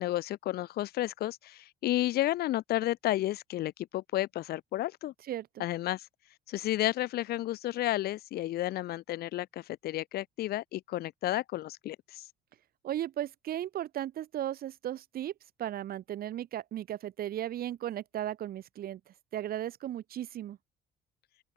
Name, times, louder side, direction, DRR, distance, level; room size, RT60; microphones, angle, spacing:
voice 1, 0.0-5.1 5.6-6.0 6.5-12.2, left 15 dB, 65° left, 0.9 m, -32 dB
voice 2, 5.3-5.6 12.8-15.3 15.6-20.6, right 12 dB, 60° right, 4.0 m, -36 dB
open air
cardioid pair, 110°, 17 cm